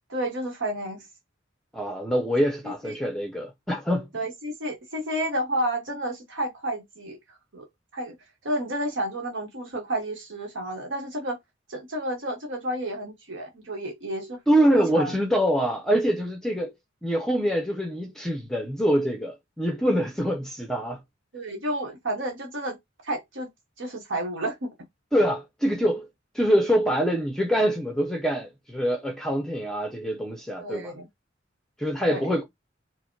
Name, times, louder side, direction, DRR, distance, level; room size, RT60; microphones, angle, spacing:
voice 1, 0.1-1.0 2.9-3.0 4.1-7.2 7.5-7.7 7.9-8.1 8.4-11.4 11.7-14.4 14.7-15.3 21.3-22.8 23.0-23.5 23.8-24.7 30.6-31.1 32.1-32.3, right 1 dB, 75° right, 1.0 m, -31 dB
voice 2, 1.7-4.1 14.5-16.7 17.0-21.0 25.1-26.1 26.3-30.9 31.8-32.4, equal, 5° left, 0.6 m, -24 dB
4.7 x 2.1 x 4.4 m
head